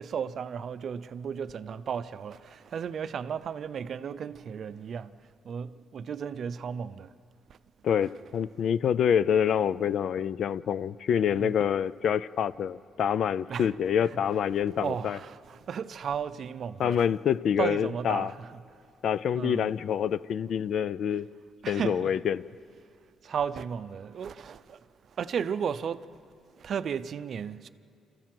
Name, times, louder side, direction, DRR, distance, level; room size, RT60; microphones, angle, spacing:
voice 1, 0.0-5.2 5.4-7.1 7.5-7.6 11.3-11.5 13.5-13.7 14.1-14.2 14.8-17.0 17.6-18.5 19.3-19.7 21.6-22.1 23.2-24.8 25.1-26.1 26.6-27.7, right 7 dB, 45° right, 0.5 m, -34 dB
voice 2, 7.8-15.2 16.8-18.3 19.0-21.3 21.7-22.4, left 8 dB, 55° left, 0.4 m, -26 dB
26.5 x 14.5 x 7.7 m
cardioid pair, 155°, 0 cm